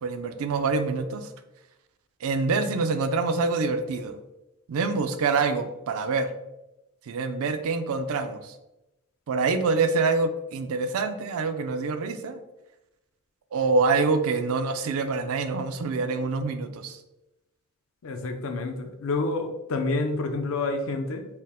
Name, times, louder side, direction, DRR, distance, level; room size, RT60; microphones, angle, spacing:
voice 1, 0.0-1.3 2.2-4.2 4.7-6.3 7.1-8.6 9.3-12.4 13.5-17.0, right 4 dB, 65° right, 8 dB, 0.4 m, -26 dB
voice 2, 18.0-21.3, left 3 dB, 65° left, 6 dB, 0.5 m, -28 dB
4.3 x 2.0 x 3.6 m, 0.94 s
head